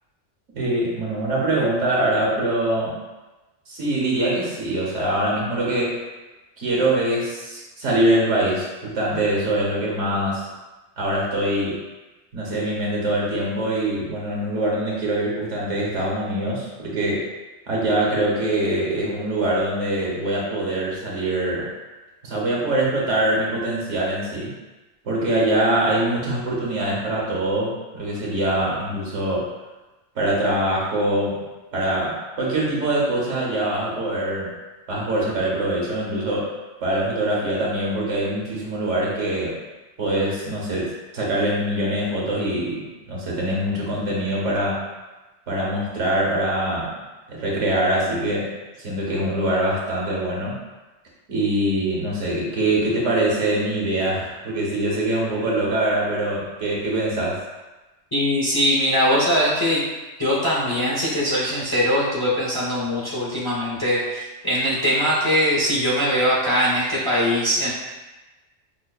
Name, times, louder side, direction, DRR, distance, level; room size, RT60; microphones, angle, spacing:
voice 1, 0.5-3.0 3.7-6.0 6.6-10.4 11.0-11.8 12.3-17.3 17.7-21.7 22.2-24.5 25.0-29.5 30.1-31.4 31.7-34.5 34.9-36.5 36.8-39.6 40.0-44.8 45.5-46.9 47.3-48.5 48.8-50.6 51.3-57.4, right 1 dB, 75° right, -3 dB, 1.3 m, -23 dB
voice 2, 58.1-59.8 60.2-67.7, equal, 20° left, -8 dB, 0.8 m, -21 dB
5.9 x 2.1 x 2.3 m, 1.1 s
omnidirectional pair, 1.3 m